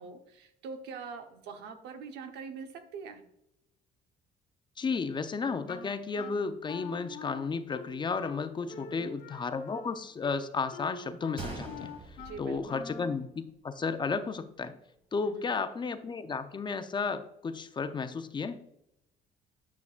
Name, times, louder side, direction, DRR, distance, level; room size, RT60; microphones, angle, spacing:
voice 1, 0.0-3.2 8.7-9.1 12.2-12.9 15.2-15.5, right 5 dB, 85° right, 6 dB, 1.0 m, -44 dB
voice 2, 4.8-11.9 12.4-14.8 15.1-18.6, left 4 dB, 25° left, 10 dB, 0.5 m, -33 dB
Wind instrument woodwind instrument, 5.7-13.2, left 5 dB, 70° left, 1.2 m, -45 dB
Gunshot gunfire, 11.4-13.4 13.7-13.8 14.5-14.7, right 4 dB, 35° right, 1.6 m, -44 dB
9.6 x 5.8 x 2.4 m, 0.82 s
cardioid pair, 110°, 17 cm